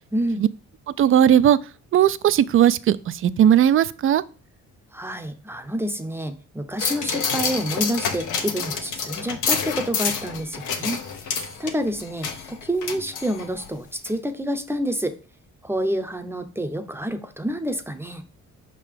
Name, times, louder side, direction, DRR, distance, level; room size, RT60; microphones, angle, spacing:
voice 1, 0.1-0.4 4.9-15.2 15.6-18.2, equal, 10° right, 0.7 m, -28 dB
voice 2, 1.0-1.6 1.9-4.2, right 10 dB, 45° right, 0.4 m, -17 dB
sound 1, 6.8-13.7 14.1-14.2, left 6 dB, 80° left, 1.1 m, -28 dB
5.4 x 3.8 x 5.0 m
cardioid pair, 90°, 30 cm